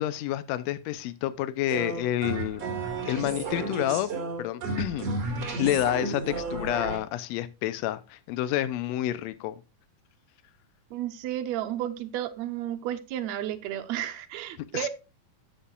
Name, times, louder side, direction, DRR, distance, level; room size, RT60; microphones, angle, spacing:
voice 1, 0.0-2.6 3.0-4.1 4.4-5.1 5.6-9.5 14.7-14.9, left 13 dB, 90° left, 1.5 m, -29 dB
sound 1, 1.7-7.0, right 3 dB, 55° right, 2.8 m, -32 dB
voice 2, 10.9-14.9, right 12 dB, 75° right, 1.8 m, -32 dB
14.5 x 5.6 x 2.3 m
omnidirectional pair, 3.6 m